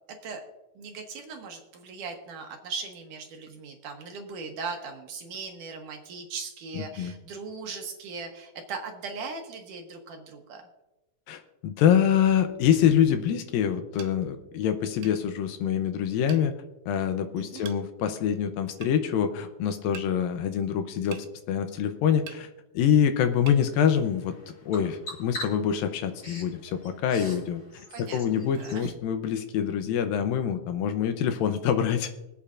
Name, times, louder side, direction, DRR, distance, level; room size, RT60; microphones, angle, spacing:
voice 1, 0.8-10.6 17.4-17.7 27.9-28.9, right 4 dB, 65° right, 3 dB, 2.3 m, -39 dB
voice 2, 6.7-7.1 11.3-16.5 16.9-22.5 22.7-24.3 24.7-27.6 28.0-32.1, left 8 dB, 75° left, 8 dB, 2.3 m, -25 dB
sound 1, 14.0-14.2 15.0-15.2 16.3-16.5 17.7-17.8 18.8-19.0 20.0-20.1 21.1-21.3 22.3-22.4 23.5-23.6, right 9 dB, 85° right, 2.8 m, -43 dB
Bird vocalization bird call bird song, 23.2-28.8, left 1 dB, 30° left, 5.3 m, -44 dB
24.5 x 8.6 x 2.5 m, 0.98 s
omnidirectional pair, 4.4 m